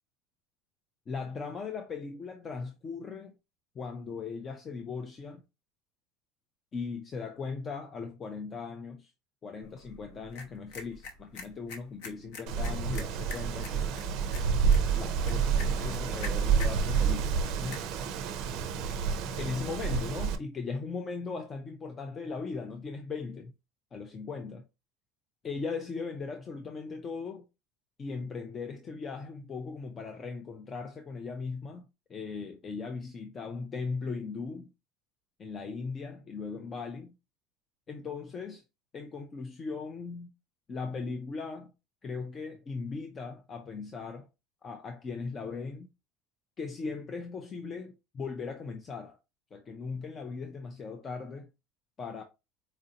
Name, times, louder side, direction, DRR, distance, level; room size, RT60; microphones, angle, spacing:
voice 1, 1.1-3.3 3.8-5.4 6.7-9.1 9.4-13.9 14.9-17.3 17.6-17.8 19.4-23.5 23.9-24.6 25.4-27.4 28.0-34.7 35.4-37.2 37.9-38.6 38.9-40.3 40.7-41.7 42.0-44.3 44.6-45.9 46.6-49.2 49.5-51.5 52.0-52.2, left 4 dB, 20° left, 0.4 m, -38 dB
sound 1, 9.6-19.1, left 3 dB, 65° left, 0.9 m, -48 dB
Wind, 12.5-20.4, right 6 dB, 45° right, 0.5 m, -29 dB
4.2 x 2.6 x 2.7 m
cardioid pair, 175°, 0 cm